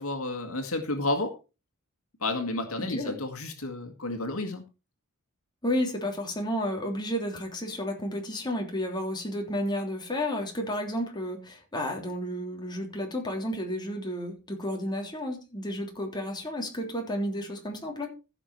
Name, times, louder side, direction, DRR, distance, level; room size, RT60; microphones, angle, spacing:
voice 1, 0.0-1.3 2.2-4.6, left 2 dB, 80° left, 6 dB, 2.0 m, -31 dB
voice 2, 2.8-3.2 5.6-18.1, equal, 20° left, 1 dB, 3.3 m, -32 dB
15.0 x 6.2 x 4.7 m, 0.30 s
head